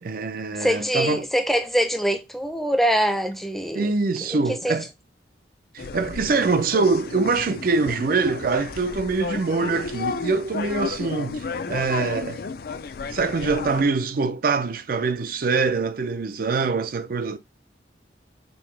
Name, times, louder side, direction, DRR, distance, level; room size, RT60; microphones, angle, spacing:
voice 1, 0.0-1.3 3.7-4.9 5.7-12.4 13.1-17.4, right 4 dB, 55° right, 0.4 m, -24 dB
voice 2, 0.6-3.9 4.3-4.8, equal, ahead, 0.6 m, -24 dB
sound 1, 5.8-13.8, left 4 dB, 55° left, 0.4 m, -33 dB
5.4 x 2.8 x 3.2 m
head